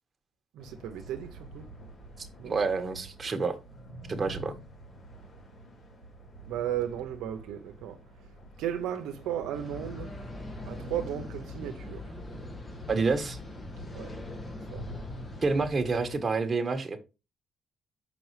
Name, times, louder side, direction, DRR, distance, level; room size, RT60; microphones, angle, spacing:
voice 1, 0.5-1.7 2.4-2.6 6.5-8.0 8.6-10.1 10.7-12.0 13.9-14.1 14.7-14.9, right 10 dB, 90° right, 0.7 m, -35 dB
sound 1, 0.6-16.2, right 1 dB, 55° left, 4.2 m, -47 dB
voice 2, 2.2-3.5 4.1-4.5 12.9-13.4 15.4-17.0, right 4 dB, 35° right, 1.3 m, -28 dB
sound 2, 9.5-15.7, left 2 dB, 35° left, 1.7 m, -42 dB
6.1 x 5.4 x 3.2 m
cardioid pair, 90°, 0 cm